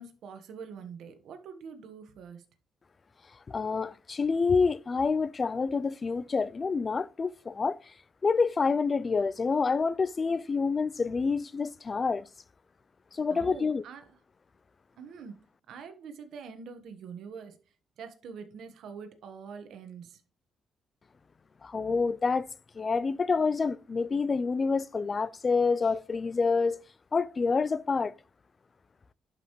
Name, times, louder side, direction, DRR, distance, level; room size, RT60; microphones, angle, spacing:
voice 1, 0.0-2.4 13.3-14.0 15.0-15.4 15.7-17.6 18.0-20.2, right 6 dB, 75° right, 1.3 m, -44 dB
voice 2, 3.5-7.8 8.2-12.3 13.1-13.8 21.6-22.5 22.8-26.8 27.1-28.1, left 4 dB, 35° left, 0.4 m, -27 dB
11.0 x 5.4 x 3.1 m
cardioid pair, 90°, 0 cm